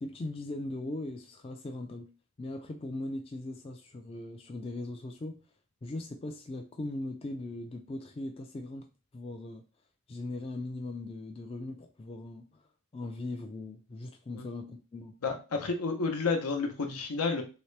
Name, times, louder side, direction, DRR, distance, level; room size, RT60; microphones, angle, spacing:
voice 1, 0.0-2.1 2.4-5.4 5.8-8.9 9.1-9.6 10.1-12.6 12.9-15.1, left 2 dB, 25° left, 0.3 m, -39 dB
voice 2, 15.2-17.4, left 4 dB, 85° left, 0.8 m, -30 dB
3.1 x 2.9 x 3.2 m
head